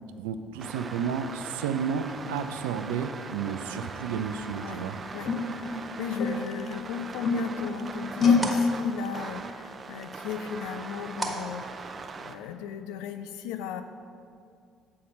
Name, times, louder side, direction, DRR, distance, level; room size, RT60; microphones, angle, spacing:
voice 1, 0.2-5.0, right 7 dB, 85° right, 9 dB, 0.4 m, -32 dB
sound 1, 0.6-12.3, right 4 dB, 40° right, 0.5 m, -41 dB
sound 2, 3.6-3.9 4.6-4.7 5.3-6.6 7.0-7.8 8.2-8.6, left 5 dB, 50° left, 1.2 m, -25 dB
voice 2, 5.7-11.6 12.2-13.8, left 8 dB, 80° left, 9 dB, 0.4 m, -36 dB
sound 3, 7.0-12.4, right 1 dB, 10° right, 1.5 m, -41 dB
8.4 x 4.2 x 6.4 m, 2.4 s
hypercardioid pair, 60°, 0 cm